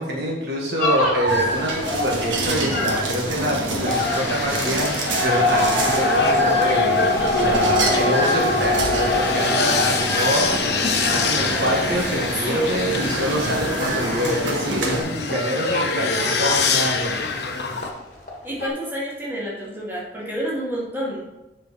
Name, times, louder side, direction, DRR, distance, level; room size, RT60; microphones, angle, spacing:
voice 1, 0.0-17.2, equal, 60° right, -2 dB, 1.8 m, -25 dB
sound 1, 0.8-17.5 17.8-18.3 18.6-18.7, left 2 dB, 45° left, 1.7 m, -25 dB
sound 2, 1.3-15.0, right 1 dB, 85° right, 1.6 m, -27 dB
sound 3, 3.9-17.9, left 4 dB, 60° left, 0.9 m, -26 dB
voice 2, 12.4-12.8 18.4-21.2, right 1 dB, 10° right, -6 dB, 2.2 m, -28 dB
7.5 x 6.3 x 4.2 m, 1.0 s
head